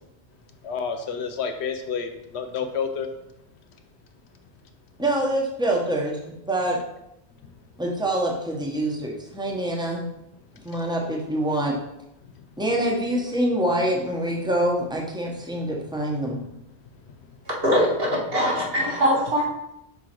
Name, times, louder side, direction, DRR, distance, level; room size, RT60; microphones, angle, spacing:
voice 1, 0.6-3.1 7.4-7.5 10.6-10.8 12.2-12.4 16.3-16.6 17.1-17.4, left 6 dB, 80° left, 6 dB, 1.0 m, -31 dB
voice 2, 5.0-6.1 6.5-6.8 7.8-10.1 10.6-11.7 12.6-16.4, right 1 dB, 5° right, -1 dB, 0.9 m, -25 dB
voice 3, 17.6-19.5, equal, 60° right, -3 dB, 1.9 m, -22 dB
5.7 x 3.8 x 4.4 m, 0.84 s
omnidirectional pair, 1.1 m